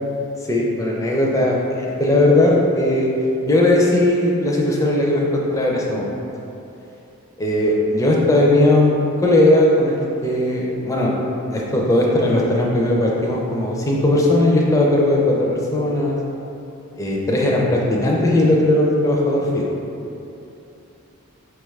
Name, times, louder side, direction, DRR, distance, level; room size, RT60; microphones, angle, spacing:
voice 1, 0.4-3.1 3.5-6.1 7.4-8.9 9.2-11.1 11.5-16.2 17.0-19.6, left 1 dB, 15° left, -3 dB, 0.4 m, -18 dB
4.6 x 2.3 x 3.2 m, 2.9 s
head